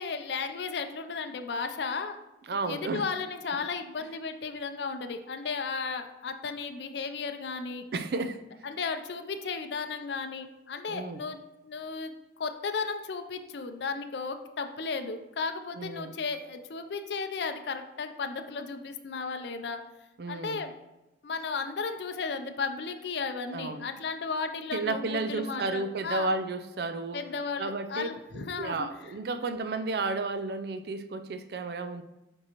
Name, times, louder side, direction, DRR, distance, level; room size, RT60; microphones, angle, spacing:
voice 1, 0.0-2.2 2.7-7.8 8.6-19.8 20.3-20.7 21.2-26.3 27.1-28.9, left 4 dB, 70° left, 7 dB, 0.5 m, -34 dB
voice 2, 2.5-3.1 7.9-8.4 10.9-11.2 15.8-16.2 20.2-20.6 23.5-23.9 24.7-27.2 27.6-28.1 28.3-32.0, right 3 dB, 60° right, 10 dB, 0.4 m, -32 dB
7.3 x 4.6 x 3.0 m, 0.97 s
head